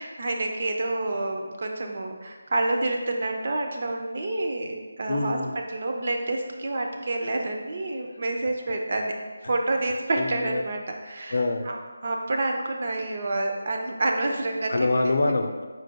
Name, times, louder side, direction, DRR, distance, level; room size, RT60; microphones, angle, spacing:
voice 1, 0.0-5.4 5.7-9.1 9.5-11.4 11.7-14.9, right 2 dB, 50° right, 2 dB, 0.6 m, -28 dB
voice 2, 5.1-5.6 9.4-9.5 10.2-10.6 11.3-11.7 14.7-15.6, left 2 dB, 65° left, 5 dB, 0.5 m, -25 dB
5.0 x 4.6 x 2.2 m, 1.4 s
figure-of-eight pair, 165°, 0 cm